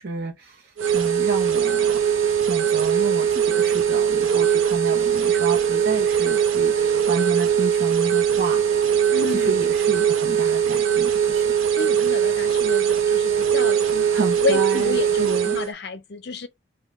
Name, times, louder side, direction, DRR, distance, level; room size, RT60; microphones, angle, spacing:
voice 1, 0.0-2.0 2.4-8.6 9.3-11.5 14.1-15.6, right 3 dB, 50° right, 0.8 m, -30 dB
sound 1, 0.8-15.7, right 8 dB, 85° right, 0.6 m, -21 dB
voice 2, 9.1-9.5 11.7-16.5, left 3 dB, 55° left, 0.5 m, -30 dB
3.7 x 2.2 x 3.0 m
head